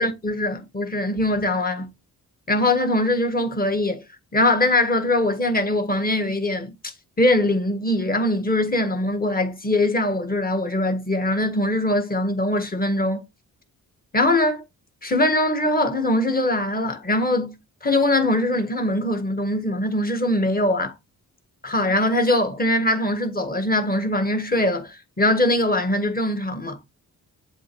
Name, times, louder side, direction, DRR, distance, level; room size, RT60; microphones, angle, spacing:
voice 1, 0.0-1.9 2.5-4.0 4.3-6.8 7.2-13.2 14.1-14.6 15.0-17.5 17.8-20.9 21.6-26.8, left 1 dB, 25° left, 1.7 m, -22 dB
7.6 x 3.0 x 4.7 m
cardioid pair, 75°, 35 cm